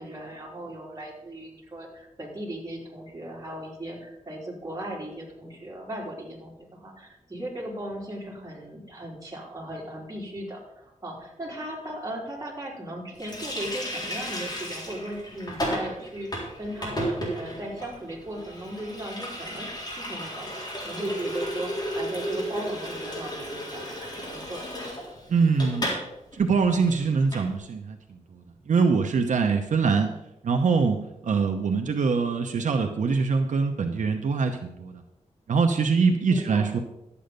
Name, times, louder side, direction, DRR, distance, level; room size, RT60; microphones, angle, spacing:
voice 1, 0.0-24.7 36.3-36.8, right 1 dB, 30° right, -3 dB, 3.6 m, -37 dB
Water tap faucet, 13.2-26.1 26.3-26.5 26.7-27.5, equal, 35° left, 3.9 m, -34 dB
voice 2, 25.3-25.9 26.3-30.1 30.4-35.0 35.5-36.8, right 5 dB, 80° right, 4 dB, 0.9 m, -24 dB
11.5 x 8.6 x 5.3 m, 0.89 s
wide cardioid pair, 130°, 13 cm